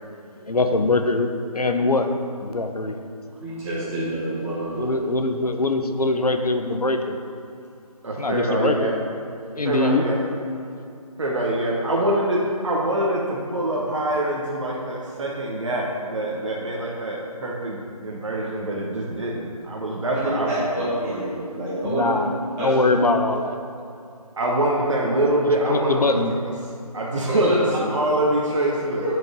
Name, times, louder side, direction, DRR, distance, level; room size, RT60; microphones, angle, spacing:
voice 1, 0.4-1.3 1.5-2.1 2.4-3.0 4.7-7.2 8.2-8.7 9.6-10.1 21.8-23.6 25.7-26.3, left 2 dB, 80° left, 7 dB, 0.8 m, -22 dB
voice 2, 3.4-4.9 20.1-22.1 22.6-22.7 27.3-27.6 29.0-29.1, right 1 dB, 10° right, -10 dB, 1.4 m, -27 dB
voice 3, 8.0-8.9 9.6-10.2 11.2-21.2 24.4-26.4 26.9-29.1, right 1 dB, 50° right, -3 dB, 1.0 m, -24 dB
6.5 x 5.2 x 6.1 m, 2.5 s
figure-of-eight pair, 160°, 19 cm